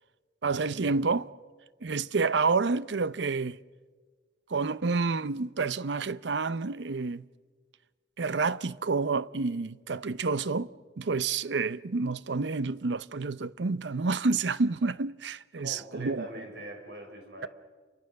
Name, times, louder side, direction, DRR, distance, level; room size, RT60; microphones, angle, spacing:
voice 1, 0.4-1.3 1.8-3.6 4.5-7.2 8.2-10.7 11.0-16.3, right 4 dB, 80° right, 0.6 m, -29 dB
voice 2, 15.6-17.5, right 1 dB, 65° right, 6.5 m, -42 dB
29.5 x 25.0 x 6.5 m
head